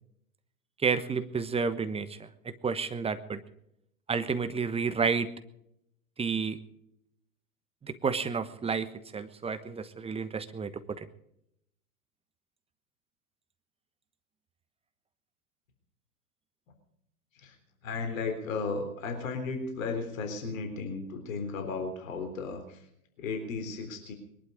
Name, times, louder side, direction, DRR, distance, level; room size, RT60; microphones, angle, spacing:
voice 1, 0.8-3.4 4.1-5.3 6.2-6.6 7.8-11.1, right 5 dB, 15° right, 11 dB, 1.1 m, -31 dB
voice 2, 17.3-22.9 23.2-24.1, left 4 dB, 65° left, 5 dB, 3.8 m, -35 dB
22.0 x 11.5 x 5.1 m, 0.75 s
hypercardioid pair, 100°, 43 cm